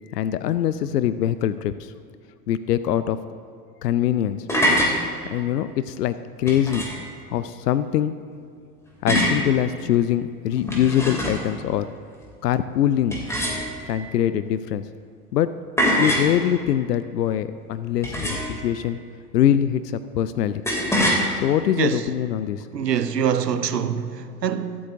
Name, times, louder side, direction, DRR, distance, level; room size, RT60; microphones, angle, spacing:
voice 1, 0.1-1.9 2.5-3.2 3.8-4.5 5.3-6.8 7.3-8.1 9.0-11.9 12.4-13.2 13.9-14.8 15.3-15.5 16.0-19.0 19.3-20.6 21.4-22.7, left 10 dB, 80° left, 0.5 m, -23 dB
sound 1, 4.3-5.0 6.5-7.1 9.1-9.5 10.5-11.5 13.1-13.9 15.8-16.3 18.0-18.6 20.7-21.2, equal, 5° left, 2.7 m, -23 dB
voice 2, 22.7-24.8, right 8 dB, 85° right, 0.7 m, -24 dB
24.5 x 8.6 x 2.6 m
figure-of-eight pair, 85°, 48 cm